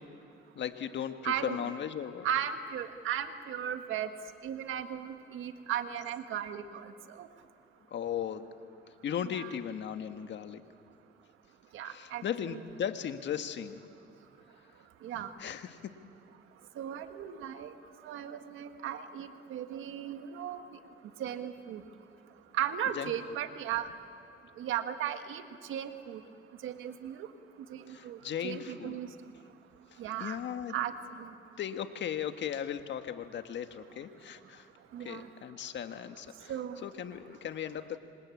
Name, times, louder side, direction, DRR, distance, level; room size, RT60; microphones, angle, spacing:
voice 1, 0.5-2.3 7.9-8.5 8.9-10.6 11.8-13.8 15.4-16.0 22.9-23.4 27.9-29.3 29.9-30.7 31.6-34.7 35.0-38.0, left 9 dB, 65° left, 8 dB, 1.6 m, -37 dB
voice 2, 1.2-1.6 2.2-4.1 4.4-6.9 7.2-7.3 9.4-9.5 11.7-12.2 15.0-15.3 16.8-17.7 18.0-20.6 21.2-21.8 22.5-23.9 24.6-25.4 25.7-26.2 26.6-27.3 27.7-29.1 30.0-30.4 30.7-30.9 31.2-31.3 34.9-35.3 36.5-36.8, right 10 dB, 85° right, 8 dB, 1.8 m, -36 dB
26.5 x 26.0 x 8.6 m, 2.6 s
cardioid pair, 90°, 20 cm